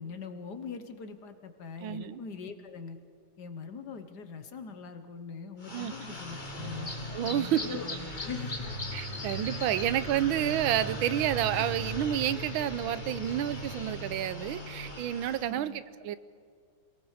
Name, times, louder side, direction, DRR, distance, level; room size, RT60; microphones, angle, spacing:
voice 1, 0.0-3.0 3.4-6.9 7.3-7.9 8.2-8.7 15.4-15.8, left 5 dB, 60° left, 9 dB, 1.6 m, -42 dB
voice 2, 1.8-2.2 5.7-6.1 7.1-7.7 8.9-16.2, right 11 dB, 90° right, 15 dB, 1.5 m, -30 dB
sound 1, 5.6-15.5, equal, 25° left, 2.0 m, -38 dB
28.0 x 19.0 x 5.0 m, 2.2 s
omnidirectional pair, 2.2 m